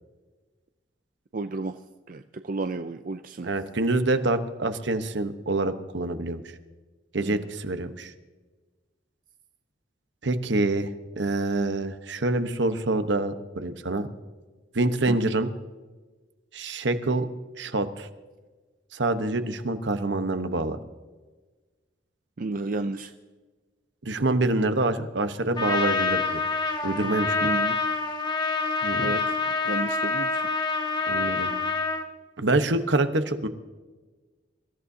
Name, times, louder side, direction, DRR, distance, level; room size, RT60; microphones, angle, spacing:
voice 1, 1.3-1.7 2.1-3.5 7.2-7.5 15.1-15.2 22.4-23.1 27.4-27.8 29.0-29.3 29.7-30.4, right 3 dB, 45° right, 9 dB, 0.5 m, -32 dB
voice 2, 3.4-6.4 7.1-8.1 10.2-10.9 11.2-14.1 14.7-15.5 16.5-17.3 17.6-18.1 18.9-20.8 24.0-26.4 26.8-27.4 28.8-29.1 31.1-31.5 32.4-33.5, right 2 dB, 70° right, 9 dB, 1.1 m, -26 dB
Trumpet, 25.5-32.0, left 3 dB, 25° left, 1.2 m, -26 dB
25.0 x 14.0 x 2.8 m, 1.3 s
head